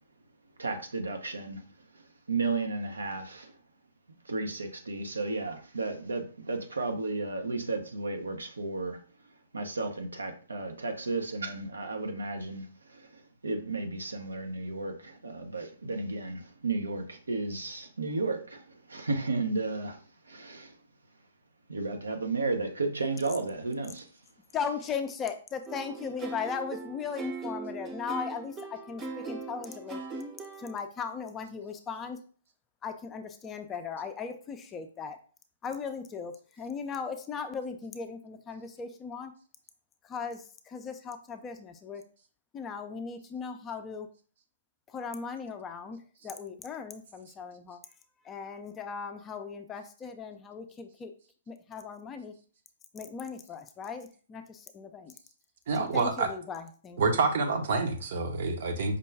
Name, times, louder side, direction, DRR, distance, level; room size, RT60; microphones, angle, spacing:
voice 1, 0.6-1.6 1.9-3.6 4.2-9.0 9.5-20.8 21.7-24.1, right 3 dB, 90° right, 4 dB, 0.8 m, -33 dB
voice 2, 24.5-30.0 30.6-32.2 32.8-35.2 35.6-39.3 40.0-42.0 42.5-44.1 44.9-46.0 46.2-47.8 48.2-51.1 51.5-52.3 52.9-55.1 55.9-57.0, left 6 dB, 20° left, 6 dB, 0.5 m, -38 dB
sound 1, 25.7-30.8, right 3 dB, 20° right, 0.7 m, -39 dB
voice 3, 55.7-56.3 57.0-59.0, right 4 dB, 60° right, 6 dB, 0.8 m, -27 dB
5.2 x 2.2 x 3.4 m, 0.41 s
hypercardioid pair, 130°, 0 cm